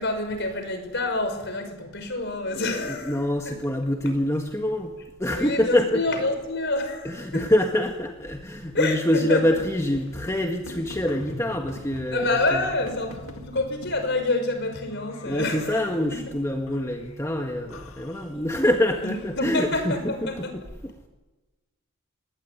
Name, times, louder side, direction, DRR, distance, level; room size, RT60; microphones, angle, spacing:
voice 1, 0.0-3.5 5.3-7.5 8.7-9.6 11.3-11.4 12.1-16.2 19.0-20.5, left 2 dB, 55° left, 7 dB, 5.7 m, -28 dB
voice 2, 2.5-4.9 5.2-6.0 7.0-12.6 15.2-20.9, left 1 dB, 15° left, 3 dB, 1.7 m, -25 dB
sound 1, 8.5-17.9, equal, 60° right, 3.4 m, -47 dB
sound 2, 9.6-14.1 14.9-16.2 16.7-17.2 17.7-19.5, left 2 dB, 75° left, 2.0 m, -45 dB
25.5 x 21.0 x 9.9 m, 1.2 s
head